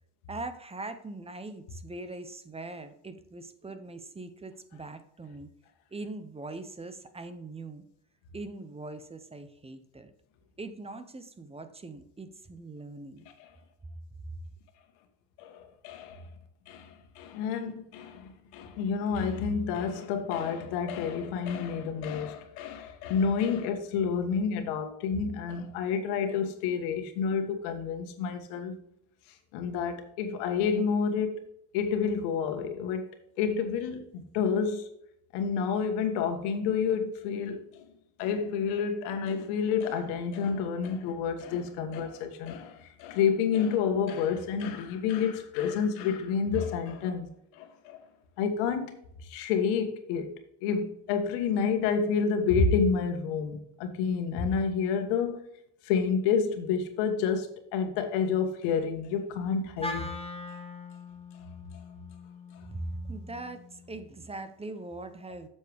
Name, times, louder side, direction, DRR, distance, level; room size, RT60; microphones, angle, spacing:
voice 1, 0.3-5.5 5.9-7.8 8.3-10.1 10.6-13.3 62.7-65.5, right 2 dB, 10° right, 0.7 m, -41 dB
voice 2, 15.4-16.3 16.7-28.7 29.3-31.4 31.7-34.9 35.3-37.9 38.2-47.3 47.5-48.0 48.4-55.5 55.8-60.1 62.5-62.6, left 6 dB, 80° left, 1.6 m, -29 dB
Wind instrument woodwind instrument, 59.8-64.1, left 2 dB, 10° left, 1.3 m, -42 dB
7.9 x 7.2 x 3.5 m
supercardioid pair, 110°, 49 cm